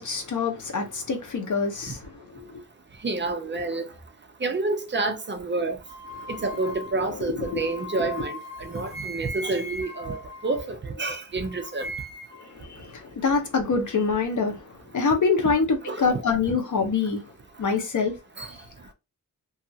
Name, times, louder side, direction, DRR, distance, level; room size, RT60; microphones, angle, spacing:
voice 1, 0.0-2.5 6.2-6.3 7.3-7.7 12.4-17.2 17.6-18.1, left 4 dB, 65° left, 0.8 m, -26 dB
voice 2, 3.0-3.9 4.4-5.8 6.3-11.9 15.9-16.2 18.4-18.5, right 3 dB, 35° right, 0.5 m, -29 dB
sound 1, 5.9-11.1 11.5-12.5, left 1 dB, 20° left, 0.9 m, -39 dB
2.8 x 2.4 x 2.7 m
wide cardioid pair, 135°, 33 cm